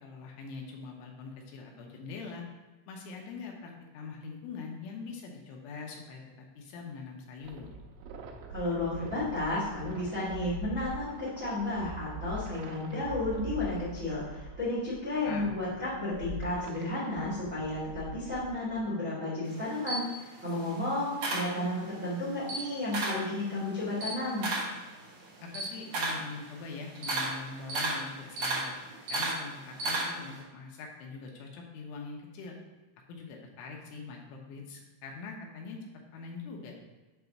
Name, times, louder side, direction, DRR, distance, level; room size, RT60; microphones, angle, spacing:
voice 1, 0.0-2.4 2.9-6.2 6.6-7.7 15.1-15.6 25.4-28.7 29.1-32.6 33.1-35.8 36.1-36.8, left 4 dB, 80° left, 0 dB, 3.1 m, -43 dB
sound 1, 7.4-18.8, right 2 dB, 90° right, 3.3 m, -43 dB
voice 2, 8.5-20.0 20.4-24.5, left 2 dB, 50° right, -7 dB, 0.9 m, -32 dB
Camera, 19.5-22.0 22.4-23.3 23.7-30.4, right 2 dB, 75° right, 1.7 m, -34 dB
7.8 x 3.0 x 5.8 m, 1.2 s
omnidirectional pair, 5.8 m